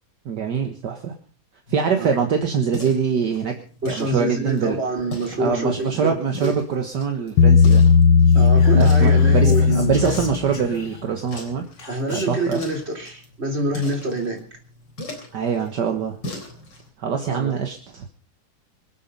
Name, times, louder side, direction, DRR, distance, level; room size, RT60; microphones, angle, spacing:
voice 1, 0.3-1.1 1.7-3.6 3.9-4.8 5.4-7.8 8.8-11.7 12.1-12.7 15.3-16.2 17.0-18.1, right 6 dB, 60° right, 4 dB, 2.0 m, -24 dB
sound 1, 1.7-16.9, left 1 dB, 65° left, 4.6 m, -40 dB
voice 2, 3.8-6.2 6.4-6.5 8.3-10.0 11.9-14.4 17.3-17.6, right 1 dB, 30° right, 2 dB, 3.6 m, -26 dB
Bass guitar, 7.4-10.8, left 5 dB, 85° left, 1.8 m, -15 dB
Whispering, 8.3-11.3 11.8-12.5, left 3 dB, 35° left, 2.7 m, -41 dB
25.5 x 8.5 x 5.4 m, 0.43 s
omnidirectional pair, 2.1 m